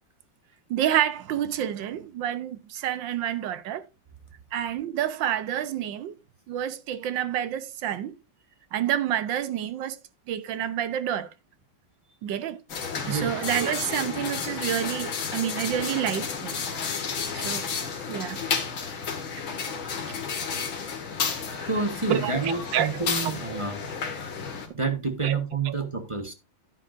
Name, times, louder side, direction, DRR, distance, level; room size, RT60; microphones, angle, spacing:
voice 1, 0.7-3.8 4.5-6.1 6.5-8.1 8.7-10.0 10.3-11.3 12.2-12.6 13.1-16.6 17.3-17.6 18.1-18.4 22.1-23.6 25.2-25.4 25.6-25.9, right 10 dB, 70° right, 1.4 m, -28 dB
sound 1, 12.7-24.7, left 6 dB, 75° left, 2.5 m, -32 dB
voice 2, 21.7-23.8 24.2-24.3 24.7-26.3, right 4 dB, 25° right, 0.8 m, -28 dB
10.0 x 9.9 x 2.5 m
omnidirectional pair, 2.2 m